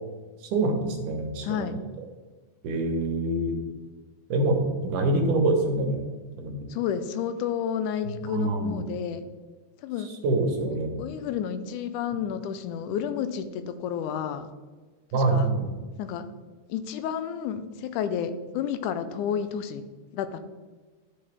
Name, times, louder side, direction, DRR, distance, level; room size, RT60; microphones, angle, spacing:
voice 1, 0.5-1.7 2.6-3.6 4.3-6.0 6.4-6.6 8.2-8.8 10.2-11.0 15.1-15.7, right 2 dB, 90° right, 3 dB, 2.7 m, -25 dB
voice 2, 1.4-1.8 6.7-9.2 9.8-10.1 10.7-14.5 15.1-15.5 16.0-16.3 16.7-19.9 20.1-20.4, left 8 dB, 90° left, 11 dB, 2.1 m, -31 dB
12.5 x 5.6 x 3.4 m, 1.3 s
omnidirectional pair, 3.5 m